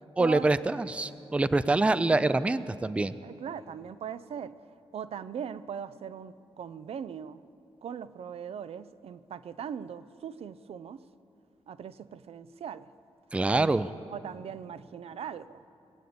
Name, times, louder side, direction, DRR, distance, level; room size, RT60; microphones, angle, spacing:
voice 1, 0.2-3.2 13.3-13.9, right 2 dB, 10° right, 15 dB, 0.3 m, -25 dB
voice 2, 3.2-4.5 4.9-7.4 7.8-11.0 11.7-12.9 13.5-13.8 14.1-15.6, right 8 dB, 75° right, 14 dB, 0.4 m, -40 dB
21.0 x 8.0 x 8.6 m, 2.7 s
wide cardioid pair, 140°, 10 cm